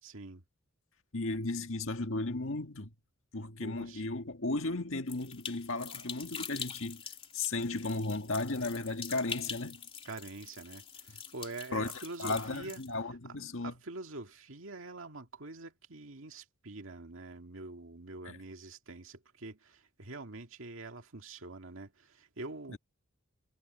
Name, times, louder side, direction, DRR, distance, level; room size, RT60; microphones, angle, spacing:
voice 1, 0.0-0.4 3.6-4.0 10.1-12.8 13.6-22.8, right 2 dB, 65° right, 2.2 m, -45 dB
voice 2, 1.1-2.9 3.3-7.0 7.3-9.8 11.7-13.7 18.2-18.4 22.7-22.8, left 2 dB, 65° left, 1.9 m, -35 dB
sound 1, 5.1-12.9, left 6 dB, 25° left, 2.8 m, -44 dB
head